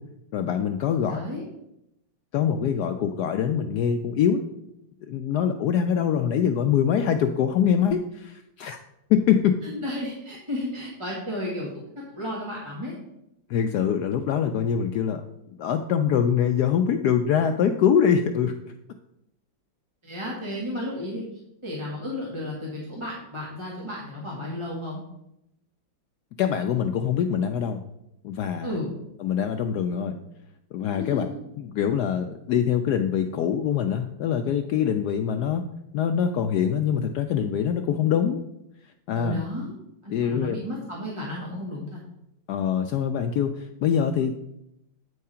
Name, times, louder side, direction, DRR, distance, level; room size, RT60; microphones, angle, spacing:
voice 1, 0.3-1.2 2.3-4.4 5.1-8.8 9.1-9.5 13.5-15.2 15.6-18.6 26.4-27.8 28.2-28.8 29.2-30.2 30.7-31.3 31.6-35.6 35.9-38.4 39.1-39.4 40.1-40.6 42.5-44.5, left 8 dB, 75° left, 7 dB, 0.9 m, -24 dB
voice 2, 1.0-1.4 9.6-11.8 12.1-12.9 20.0-21.2 21.6-25.0 28.6-28.9 31.1-31.2 39.1-39.7 40.0-42.0, left 1 dB, 15° right, -5 dB, 1.7 m, -33 dB
8.3 x 4.8 x 5.5 m, 0.83 s
omnidirectional pair, 2.1 m